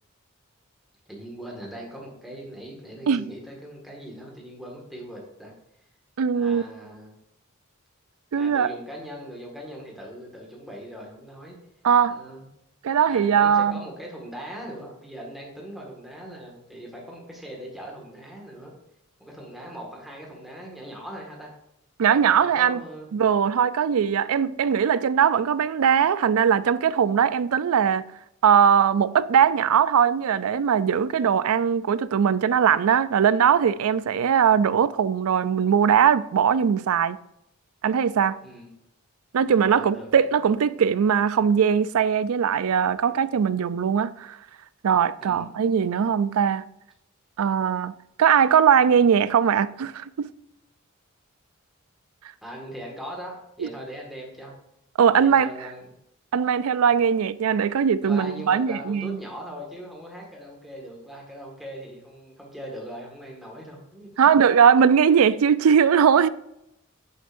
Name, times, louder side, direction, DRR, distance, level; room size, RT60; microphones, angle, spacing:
voice 1, 1.1-5.5 6.3-7.1 8.4-11.6 12.0-12.5 13.1-18.7 19.2-21.5 22.3-23.1 38.4-38.7 39.5-40.4 45.2-45.5 52.4-54.5 55.1-55.9 58.0-64.5, equal, ahead, 1.8 m, -40 dB
voice 2, 6.2-6.6 8.3-8.7 11.8-12.2 12.8-13.7 22.0-22.8 23.1-28.0 28.4-37.2 37.8-38.4 39.3-44.4 44.8-46.7 47.4-47.9 48.2-50.3 53.6-53.7 55.0-55.5 56.3-59.2 64.2-66.3, right 7 dB, 80° right, 0.4 m, -20 dB
10.5 x 6.5 x 2.6 m
head